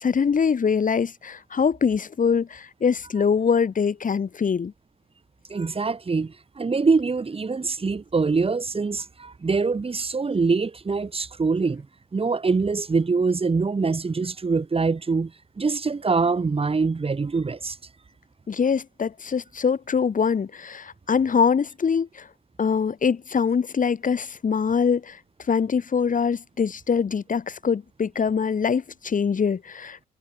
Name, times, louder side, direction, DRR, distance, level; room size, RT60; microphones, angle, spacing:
voice 1, 0.0-4.7 18.5-22.3 22.6-25.2 25.5-30.1, left 6 dB, 40° left, 4.2 m, -23 dB
voice 2, 5.5-11.9 12.1-15.3 15.6-17.8, right 4 dB, 30° right, 3.6 m, -24 dB
cardioid pair, 90°, 20 cm